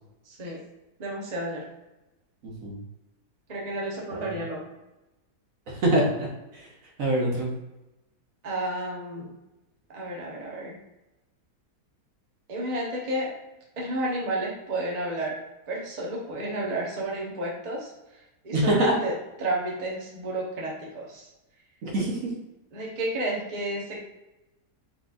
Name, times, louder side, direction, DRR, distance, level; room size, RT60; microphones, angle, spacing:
voice 1, 0.2-0.6 1.0-1.6 3.5-4.7 8.4-9.3 9.9-10.8 12.5-13.3 13.8-15.4 15.7-19.1 19.4-21.3 22.7-24.0, right 1 dB, 30° right, -3 dB, 0.9 m, -31 dB
voice 2, 2.4-2.8 4.1-4.4 5.7-6.7 7.0-7.5 18.5-19.0 21.8-22.3, right 1 dB, 55° right, -2 dB, 1.3 m, -25 dB
4.8 x 3.9 x 2.5 m, 0.98 s
omnidirectional pair, 1.7 m